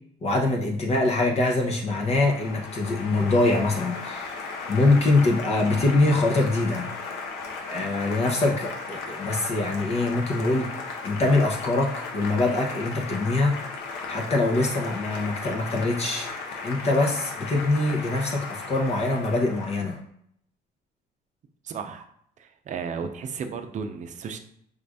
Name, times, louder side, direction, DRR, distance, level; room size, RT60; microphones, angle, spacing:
voice 1, 0.2-6.9 7.7-13.6 14.1-16.3 16.6-20.0, left 2 dB, 40° left, 0 dB, 0.8 m, -24 dB
Applause, 1.1-20.0, left 4 dB, 85° left, 0.8 m, -36 dB
voice 2, 21.6-22.1 22.4-24.4, right 6 dB, 45° right, 7 dB, 0.6 m, -34 dB
5.0 x 2.5 x 3.5 m, 0.69 s
cardioid pair, 110°, 17 cm